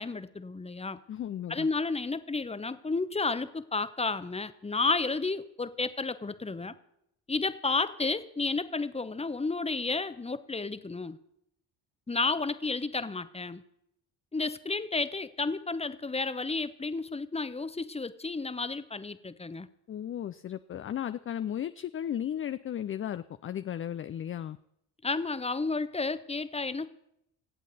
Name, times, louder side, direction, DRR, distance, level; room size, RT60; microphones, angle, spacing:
voice 1, 0.0-1.0 1.5-6.7 7.3-11.2 12.1-13.6 14.3-19.7 25.0-26.9, left 3 dB, 10° left, 13 dB, 0.9 m, -32 dB
voice 2, 1.1-1.7 19.9-24.6, left 10 dB, 30° left, 12 dB, 0.4 m, -35 dB
24.5 x 8.2 x 4.1 m, 0.79 s
hypercardioid pair, 50°, 50 cm